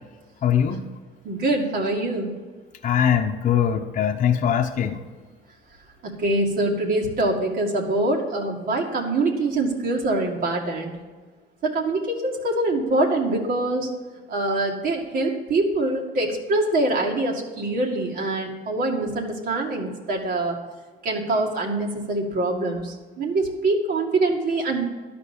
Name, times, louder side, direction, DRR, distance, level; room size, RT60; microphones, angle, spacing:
voice 1, 0.4-0.9 2.8-5.0, left 8 dB, 50° left, 3 dB, 0.8 m, -21 dB
voice 2, 1.2-2.3 6.0-10.9 11.6-13.9 14.3-20.6 21.0-24.8, right 2 dB, 60° right, 0 dB, 2.3 m, -24 dB
12.0 x 5.2 x 8.5 m, 1.4 s
cardioid pair, 110°, 17 cm